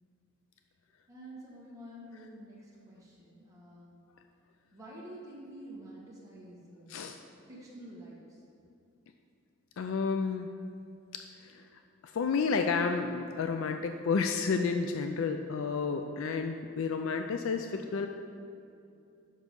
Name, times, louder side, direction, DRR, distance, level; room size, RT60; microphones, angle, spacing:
voice 1, 1.1-4.0 4.7-7.1 7.5-8.4, right 1 dB, 15° right, -6 dB, 1.7 m, -49 dB
voice 2, 9.8-10.5 11.1-18.1, left 5 dB, 75° left, 6 dB, 0.4 m, -31 dB
7.3 x 5.8 x 5.3 m, 2.6 s
head